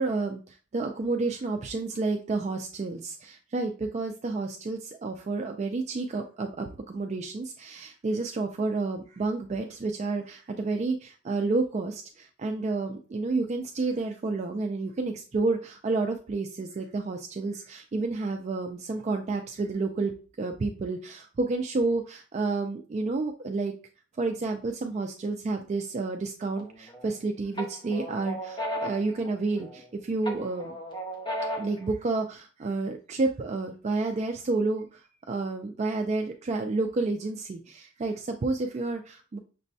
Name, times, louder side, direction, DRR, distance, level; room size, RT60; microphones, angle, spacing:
voice 1, 0.0-20.1 20.4-23.7 24.2-30.7 31.6-39.4, right 3 dB, 35° right, 4 dB, 0.3 m, -30 dB
sound 1, 26.6-27.2 27.6-29.9 30.2-31.9, equal, 25° left, 0.7 m, -35 dB
6.0 x 2.1 x 2.6 m, 0.37 s
head